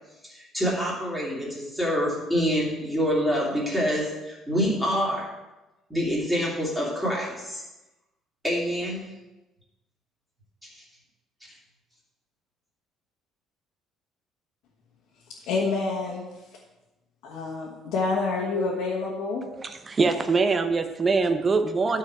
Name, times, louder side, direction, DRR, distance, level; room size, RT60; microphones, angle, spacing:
voice 1, 0.2-5.3 5.9-7.6 8.4-9.1 10.7-10.8, equal, 5° right, -5 dB, 2.6 m, -26 dB
voice 2, 15.5-16.3 17.2-19.5, left 3 dB, 75° left, -5 dB, 1.5 m, -27 dB
voice 3, 19.6-22.0, right 4 dB, 25° right, 9 dB, 0.7 m, -23 dB
12.5 x 4.7 x 4.7 m, 1.0 s
cardioid pair, 145°, 0 cm